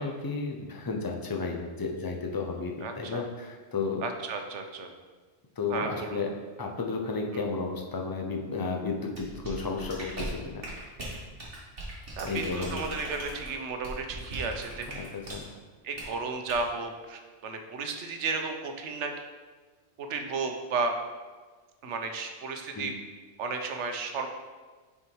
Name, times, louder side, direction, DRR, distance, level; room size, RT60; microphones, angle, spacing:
voice 1, 0.0-4.0 5.6-6.3 6.6-10.6 12.2-12.8 14.9-15.1 15.3-15.5 22.7-22.9, left 4 dB, 25° left, 1 dB, 0.6 m, -33 dB
voice 2, 2.8-3.2 4.0-4.9 5.7-6.3 7.3-7.4 12.2-15.1 15.8-19.1 20.0-20.9 21.8-22.9 23.4-24.3, right 4 dB, 90° right, 5 dB, 1.1 m, -33 dB
sound 1, 9.1-15.5 16.0-16.1 16.5-16.7, right 1 dB, 55° right, 1.9 m, -39 dB
5.9 x 4.7 x 4.6 m, 1.4 s
omnidirectional pair, 1.2 m